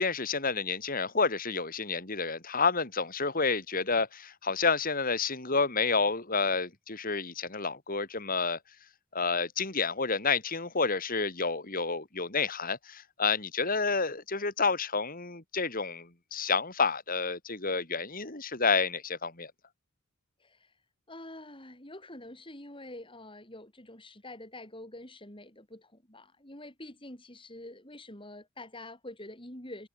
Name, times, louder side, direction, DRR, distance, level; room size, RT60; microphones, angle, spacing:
voice 1, 0.0-8.6 9.1-19.5, left 4 dB, 40° left, 3.5 m, -29 dB
voice 2, 21.1-29.9, left 1 dB, 25° left, 6.8 m, -46 dB
head